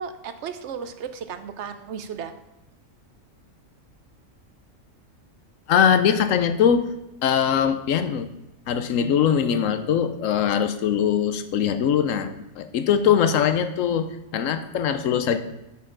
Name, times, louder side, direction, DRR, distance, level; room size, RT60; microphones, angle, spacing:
voice 1, 0.0-2.3, right 7 dB, 65° right, 9 dB, 0.9 m, -34 dB
voice 2, 5.7-6.9 7.2-8.3 8.7-15.4, left 8 dB, 80° left, 10 dB, 1.0 m, -21 dB
9.4 x 6.5 x 3.8 m, 0.94 s
omnidirectional pair, 1.3 m